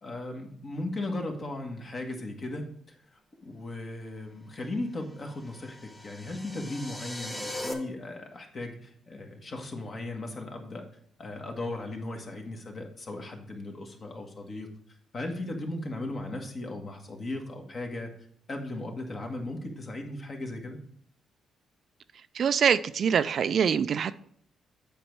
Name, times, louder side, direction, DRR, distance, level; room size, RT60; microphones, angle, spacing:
voice 1, 0.0-10.8 11.2-14.7 15.1-18.1 18.5-20.8, left 2 dB, 40° left, 3 dB, 1.6 m, -37 dB
sound 1, 5.2-7.7, left 1 dB, 10° left, 1.4 m, -39 dB
voice 2, 22.3-24.2, right 7 dB, 55° right, 14 dB, 0.3 m, -24 dB
7.8 x 5.3 x 4.6 m, 0.63 s
cardioid pair, 90°, 0 cm